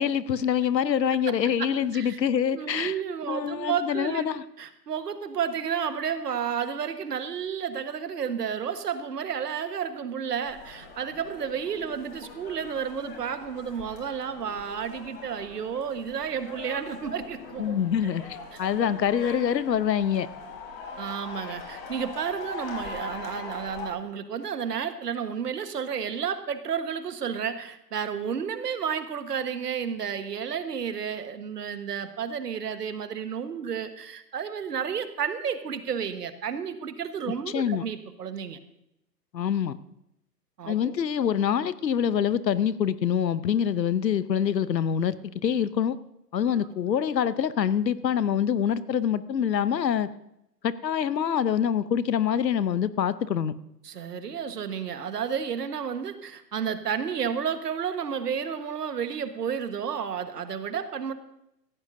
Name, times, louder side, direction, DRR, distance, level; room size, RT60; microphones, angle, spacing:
voice 1, 0.0-2.9 3.3-4.4 17.6-18.2 18.6-20.3 37.5-37.8 39.3-39.8 40.7-45.2 45.4-46.0 46.3-50.1 50.6-53.5, left 8 dB, 80° left, 16 dB, 0.9 m, -25 dB
voice 2, 1.6-2.2 2.5-17.8 21.0-38.6 40.6-40.9 46.5-46.6 53.8-61.1, right 7 dB, 70° right, 9 dB, 1.4 m, -31 dB
sound 1, 10.4-23.9, left 4 dB, 35° left, 3.4 m, -42 dB
19.0 x 15.5 x 2.7 m, 0.82 s
hypercardioid pair, 130°, 50 cm